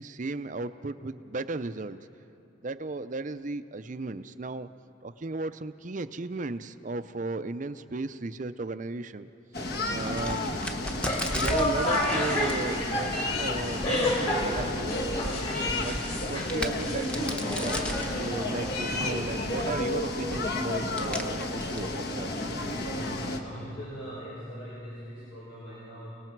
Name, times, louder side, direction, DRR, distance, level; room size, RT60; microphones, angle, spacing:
voice 1, 0.0-2.1 2.6-4.7 5.0-9.3 9.6-10.5 11.3-15.4 15.8-16.0 16.3-22.5, right 3 dB, 40° right, 12 dB, 0.5 m, -35 dB
sound 1, 9.5-23.4, left 2 dB, 55° left, 1.4 m, -32 dB
Crack, 9.7-22.9, equal, 5° left, 0.9 m, -39 dB
sound 2, 10.9-19.9, left 1 dB, 30° left, 2.5 m, -32 dB
voice 2, 22.6-26.1, equal, 75° left, -9 dB, 5.2 m, -41 dB
29.5 x 19.0 x 4.6 m, 2.8 s
head